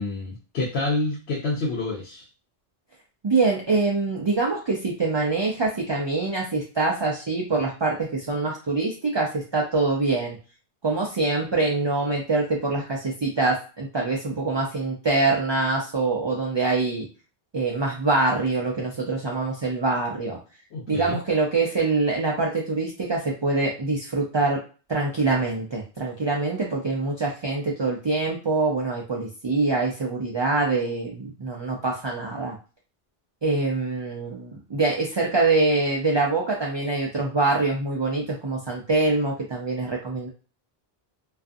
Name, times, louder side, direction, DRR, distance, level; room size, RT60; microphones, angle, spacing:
voice 1, 0.0-2.2 20.7-21.2, left 2 dB, 85° left, -3 dB, 0.9 m, -28 dB
voice 2, 3.2-10.4 10.8-17.1 17.5-20.4 20.9-24.6 24.9-32.6 33.4-40.3, right 3 dB, 45° right, -2 dB, 0.3 m, -24 dB
2.4 x 2.4 x 2.5 m, 0.35 s
omnidirectional pair, 1.0 m